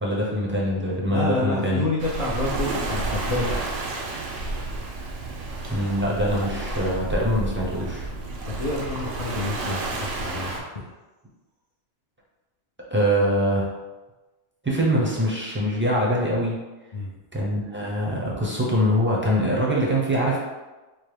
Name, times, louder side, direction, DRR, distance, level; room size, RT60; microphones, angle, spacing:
voice 1, 0.0-1.9 5.7-8.1 12.9-13.7 14.6-16.6 17.3-20.4, equal, 15° right, -5 dB, 0.5 m, -23 dB
voice 2, 1.1-3.6 8.5-10.6 16.9-17.1, left 2 dB, 55° left, -6 dB, 0.4 m, -28 dB
Waves surf, 2.0-10.6, right 2 dB, 85° right, 1.0 m, -30 dB
4.3 x 2.1 x 3.3 m, 1.2 s
omnidirectional pair, 1.2 m